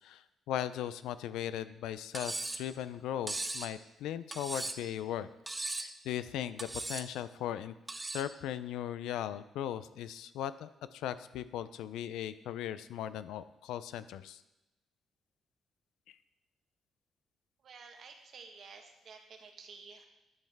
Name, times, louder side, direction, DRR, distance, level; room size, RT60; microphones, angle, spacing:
voice 1, 0.0-5.3 5.7-7.7 8.1-14.4 16.1-16.2, left 11 dB, 90° left, 14 dB, 0.3 m, -38 dB
Cutlery silverware, 2.1-2.7 3.3-3.7 4.3-4.9 5.5-6.0 6.6-7.1 7.9-8.3, right 2 dB, 15° right, 0.5 m, -38 dB
voice 2, 17.6-20.1, right 5 dB, 60° right, 4 dB, 1.2 m, -52 dB
10.5 x 5.5 x 3.5 m, 0.95 s
cardioid pair, 90°, 0 cm